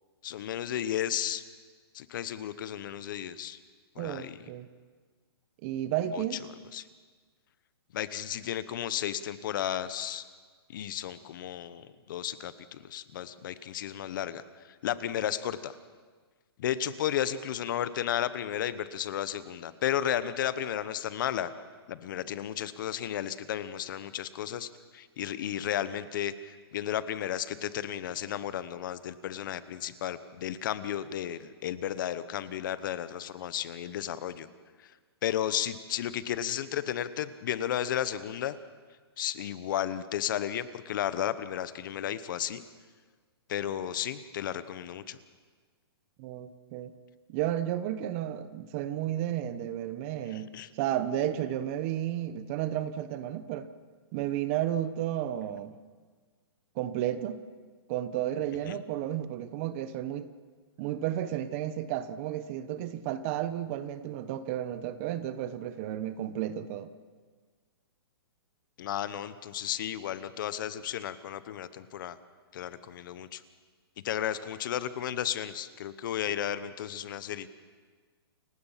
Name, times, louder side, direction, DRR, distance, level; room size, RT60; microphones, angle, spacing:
voice 1, 0.2-1.4 1.9-3.6 4.0-4.4 6.1-6.2 6.7-6.8 7.9-10.2 10.7-14.4 14.8-15.7 16.6-21.5 21.9-34.5 35.2-38.6 39.2-42.6 43.5-45.2 50.3-50.7 58.7-58.8 68.8-72.2 72.5-73.4 74.0-77.5, left 10 dB, 50° left, 14 dB, 1.0 m, -33 dB
voice 2, 4.0-4.7 5.6-6.4 46.2-46.9 47.3-53.7 54.1-55.7 56.8-57.4 57.9-60.3 60.8-66.9, right 11 dB, 30° right, 13 dB, 1.0 m, -32 dB
29.0 x 16.0 x 5.8 m, 1.5 s
hypercardioid pair, 150°, 14 cm